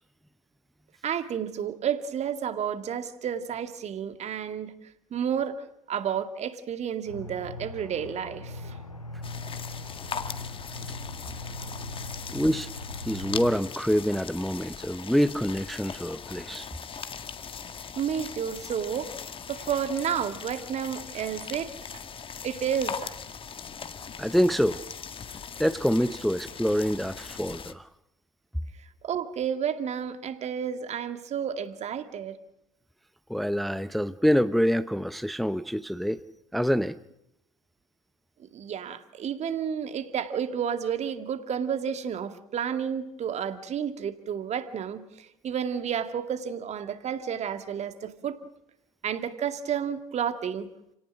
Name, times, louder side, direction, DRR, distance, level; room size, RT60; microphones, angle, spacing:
voice 1, 1.0-4.7 5.1-8.8 18.0-19.1 19.5-21.7 22.4-23.1 28.8-32.4 38.5-48.4 49.0-50.7, right 8 dB, 40° right, 9 dB, 2.3 m, -31 dB
Aircraft, 7.1-13.6, left 2 dB, 85° left, 1.4 m, -40 dB
sound 1, 9.2-27.7, left 6 dB, 30° left, 1.8 m, -40 dB
voice 2, 12.3-12.7 13.1-16.7 24.2-24.8 25.6-27.9 33.3-36.2 36.5-37.0, equal, ahead, 13 dB, 0.8 m, -26 dB
30.0 x 18.5 x 6.3 m, 0.82 s
figure-of-eight pair, 60°, 18 cm